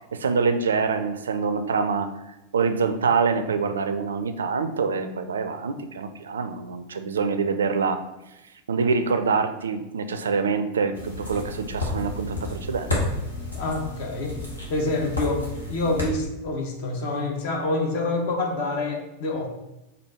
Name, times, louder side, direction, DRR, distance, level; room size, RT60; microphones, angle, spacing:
voice 1, 0.1-8.0 8.7-12.9, right 5 dB, 70° right, 9 dB, 0.4 m, -25 dB
sound 1, 10.9-16.1, left 2 dB, 75° left, 1.2 m, -31 dB
voice 2, 13.5-14.4 14.7-19.5, left 2 dB, 50° left, 2 dB, 1.0 m, -27 dB
4.4 x 2.7 x 4.2 m, 0.96 s
figure-of-eight pair, 90°, 0 cm